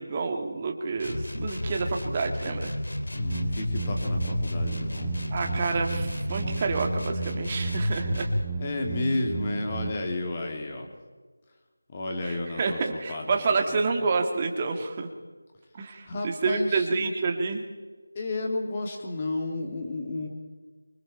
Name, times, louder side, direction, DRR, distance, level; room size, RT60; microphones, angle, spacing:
voice 1, 0.0-2.8 5.3-8.3 12.2-15.1 15.7-17.6, right 4 dB, 20° right, 3 dB, 2.1 m, -28 dB
sound 1, 1.0-8.5, left 1 dB, 80° left, 3.3 m, -31 dB
voice 2, 3.1-5.1 8.6-10.9 11.9-14.1 16.0-16.9 18.1-20.3, left 2 dB, 20° left, 2 dB, 2.9 m, -32 dB
sound 2, 3.3-9.9, right 5 dB, ahead, 1.0 m, -35 dB
25.0 x 24.0 x 4.5 m, 1.4 s
figure-of-eight pair, 175°, 0 cm